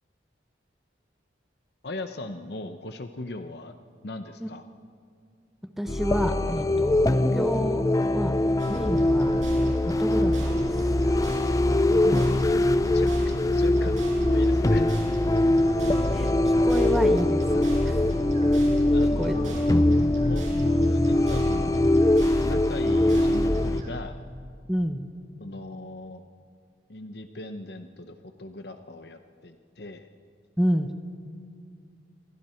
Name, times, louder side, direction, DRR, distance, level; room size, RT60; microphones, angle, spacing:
voice 1, 1.8-3.7 4.0-4.6 11.7-13.9 14.2-14.9 18.9-19.6 19.9-22.0 22.4-24.1 25.4-26.2 26.9-30.1, left 2 dB, 60° left, 7 dB, 0.9 m, -38 dB
voice 2, 5.8-7.9 8.1-8.4 8.7-9.4 9.8-11.0 16.1-18.0 19.2-19.4 24.7-25.1 30.6-30.9, equal, ahead, 6 dB, 1.0 m, -29 dB
sound 1, 5.9-23.8, left 1 dB, 20° left, 0.4 m, -22 dB
sound 2, 8.6-23.9, equal, 40° right, 6.6 m, -36 dB
28.5 x 23.0 x 4.5 m, 2.3 s
head